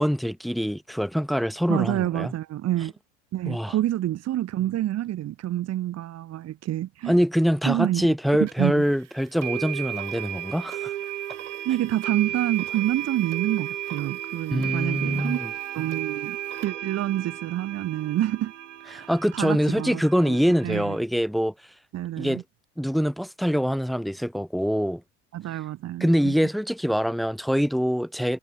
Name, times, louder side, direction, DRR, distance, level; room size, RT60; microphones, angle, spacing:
voice 1, 0.0-2.3 3.5-3.7 7.1-10.9 14.5-15.5 18.9-21.5 22.2-22.4 22.8-25.0 26.0-28.4, equal, ahead, 4.7 m, -24 dB
voice 2, 1.7-2.9 3.3-7.2 7.7-8.1 8.4-8.8 11.6-15.4 15.7-18.5 18.9-20.4 20.6-21.0 21.9-22.4 25.3-26.3, right 13 dB, 45° right, 2.8 m, -28 dB
sound 1, 8.5-8.6 9.4-21.0, right 12 dB, 90° right, 3.2 m, -34 dB
hypercardioid pair, 90°, 35 cm